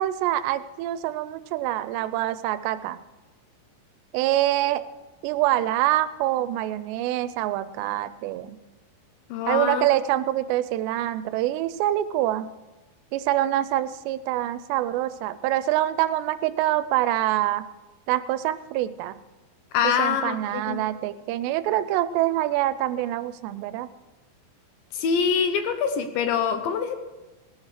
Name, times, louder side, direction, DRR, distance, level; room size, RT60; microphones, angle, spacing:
voice 1, 0.0-3.0 4.1-4.8 5.2-8.6 9.5-12.5 13.1-17.7 18.1-19.2 20.0-23.9, right 14 dB, 85° right, 14 dB, 2.7 m, -25 dB
voice 2, 9.3-9.9 19.7-20.8 24.9-27.0, left 7 dB, 75° left, 7 dB, 2.2 m, -25 dB
18.5 x 11.5 x 4.9 m, 1.1 s
omnidirectional pair, 5.0 m